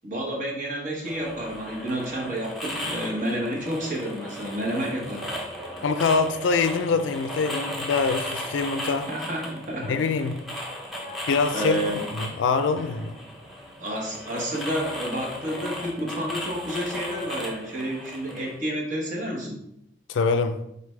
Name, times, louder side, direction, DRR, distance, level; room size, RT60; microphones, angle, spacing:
voice 1, 0.0-5.3 9.1-10.0 11.5-12.0 13.8-19.6, equal, 40° right, 1.0 m, -30 dB
sound 1, 1.0-18.6, left 1 dB, ahead, 0.7 m, -36 dB
voice 2, 5.8-9.1 9.9-10.3 11.3-13.1 20.1-20.6, left 4 dB, 80° left, 0.4 m, -24 dB
4.2 x 3.3 x 3.2 m
head